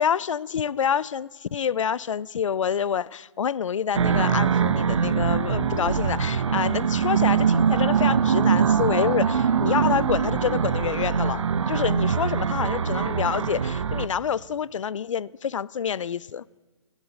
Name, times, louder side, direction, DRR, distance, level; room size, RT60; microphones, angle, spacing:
voice 1, 0.0-16.4, left 7 dB, 85° left, 0.4 m, -27 dB
sound 1, 3.9-14.1, right 7 dB, 75° right, 0.9 m, -23 dB
17.0 x 12.5 x 6.4 m
hypercardioid pair, 140°, 16 cm